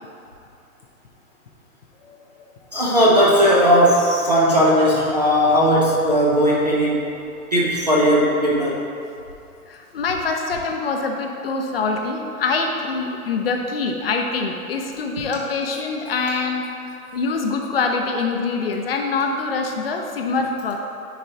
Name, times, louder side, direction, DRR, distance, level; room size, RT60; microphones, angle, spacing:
voice 1, 2.0-2.4 9.7-20.8, left 4 dB, 40° left, 3 dB, 0.5 m, -25 dB
voice 2, 2.7-7.1 7.5-8.8, equal, 30° right, -5 dB, 0.4 m, -17 dB
9.7 x 4.2 x 2.7 m, 2.6 s
hypercardioid pair, 155°, 45 cm